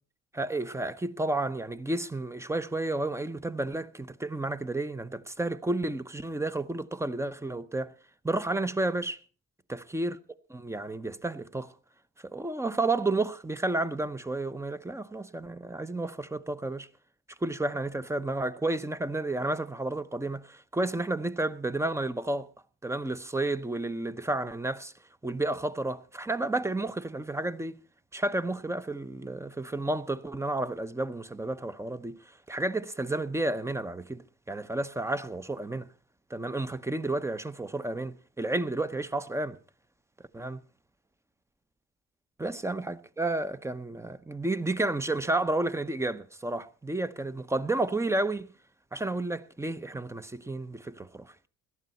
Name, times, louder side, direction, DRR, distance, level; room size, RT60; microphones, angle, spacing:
voice 1, 0.3-7.9 8.2-9.2 9.7-10.2 10.5-11.7 12.2-16.9 17.4-22.5 22.8-24.9 25.2-27.8 28.1-35.9 36.3-39.6 40.3-40.6 42.4-48.5 48.9-51.3, right 2 dB, 10° right, 0.8 m, -31 dB
17.0 x 12.5 x 4.2 m
cardioid pair, 90°, 30 cm